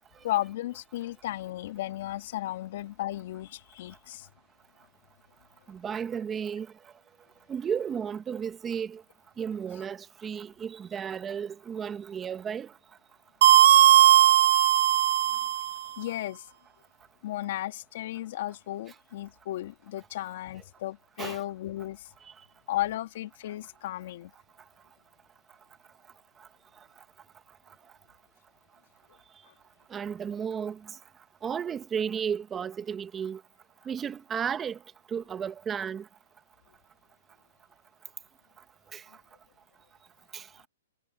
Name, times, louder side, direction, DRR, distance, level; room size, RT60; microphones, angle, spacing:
voice 1, 0.2-4.3 13.6-14.0 14.7-16.5 17.2-22.1 22.7-24.3 29.5-29.6, left 14 dB, 50° left, 2.4 m, -35 dB
voice 2, 5.7-6.7 7.5-9.0 9.4-12.7 21.2-21.4 29.9-30.9 31.4-33.4 33.8-34.8 35.1-36.1 38.9-39.0 40.3-40.5, right 7 dB, 15° right, 1.3 m, -33 dB
sound 1, 13.4-15.8, right 12 dB, 55° right, 0.4 m, -18 dB
hypercardioid pair, 150°, 0 cm